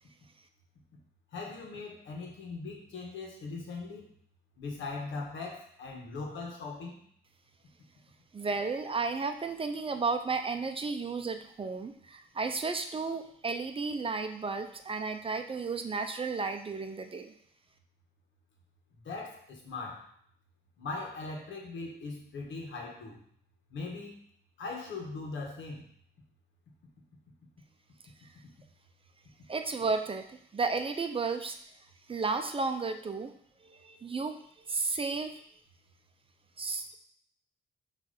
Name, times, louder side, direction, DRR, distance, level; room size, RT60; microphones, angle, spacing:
voice 1, 1.3-4.0 4.6-7.0 19.0-20.1 20.8-23.2 23.7-24.2 24.6-25.8, left 3 dB, 70° left, 0 dB, 1.8 m, -40 dB
voice 2, 8.3-17.3 29.5-31.6 32.1-33.3 33.6-34.4 34.7-35.4 36.6-37.0, right 4 dB, 30° right, 6 dB, 0.6 m, -33 dB
6.4 x 3.3 x 5.5 m, 0.63 s
cardioid pair, 90°, 20 cm